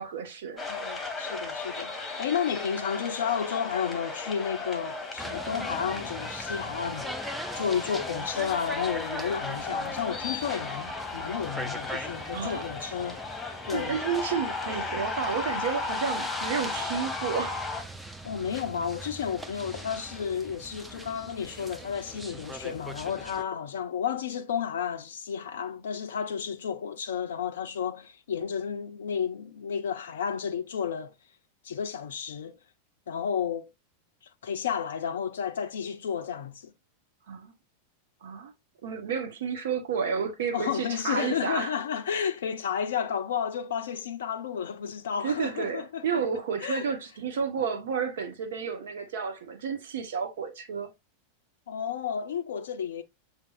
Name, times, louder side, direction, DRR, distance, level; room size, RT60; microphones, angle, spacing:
voice 1, 0.0-0.6 12.3-12.6 13.7-17.7 37.3-37.5 38.2-38.5 38.8-41.7 45.2-50.9, right 6 dB, 60° right, 0.9 m, -31 dB
sound 1, 0.6-17.8, left 3 dB, 10° left, 1.3 m, -35 dB
voice 2, 0.7-13.2 13.6-14.0 18.2-31.1 31.6-32.6 33.1-33.7 34.4-36.7 40.5-46.2 46.6-46.9 51.7-53.0, left 7 dB, 60° left, 0.4 m, -32 dB
sound 2, 5.2-23.4, right 1 dB, 5° right, 0.5 m, -41 dB
6.8 x 2.8 x 2.4 m
figure-of-eight pair, 90°, 0 cm